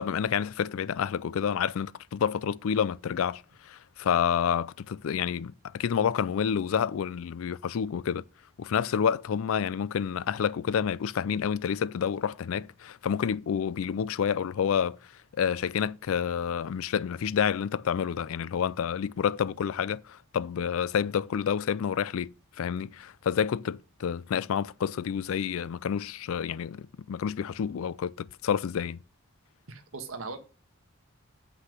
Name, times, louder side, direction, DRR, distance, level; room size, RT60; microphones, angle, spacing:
voice 1, 0.0-8.2 8.6-15.0 15.4-29.0, left 7 dB, 75° left, 0.4 m, -29 dB
voice 2, 29.7-30.4, right 4 dB, 70° right, 1.4 m, -38 dB
7.9 x 5.8 x 6.0 m
head